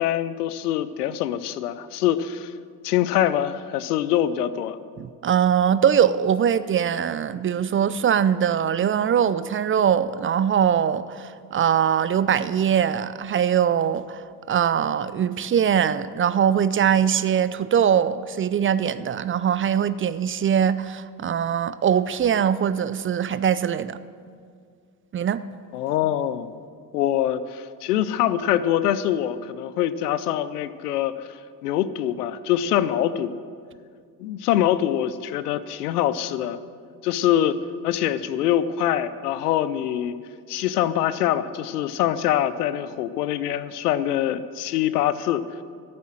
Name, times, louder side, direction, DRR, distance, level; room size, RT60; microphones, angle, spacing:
voice 1, 0.0-2.5 2.8-4.8 25.7-26.5 26.9-31.3 31.6-33.3 34.2-36.6 37.0-37.6 37.8-40.2 40.5-45.4, left 11 dB, 90° left, 0.6 m, -24 dB
voice 2, 5.0-14.2 14.5-24.0 25.1-25.4, right 8 dB, 30° right, 0.4 m, -22 dB
11.5 x 8.6 x 7.6 m
hypercardioid pair, 60°, 45 cm